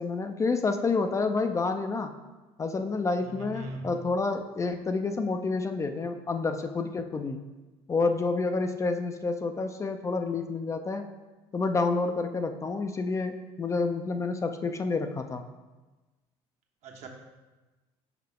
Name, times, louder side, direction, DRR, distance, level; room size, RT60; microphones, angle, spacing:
voice 1, 0.0-2.1 2.6-7.4 7.9-11.1 11.5-15.4, left 3 dB, 25° left, 7 dB, 0.4 m, -29 dB
voice 2, 3.2-3.9 16.8-17.1, right 2 dB, 60° right, 1 dB, 1.1 m, -40 dB
5.7 x 5.4 x 3.7 m, 1.2 s
supercardioid pair, 100°, 13 cm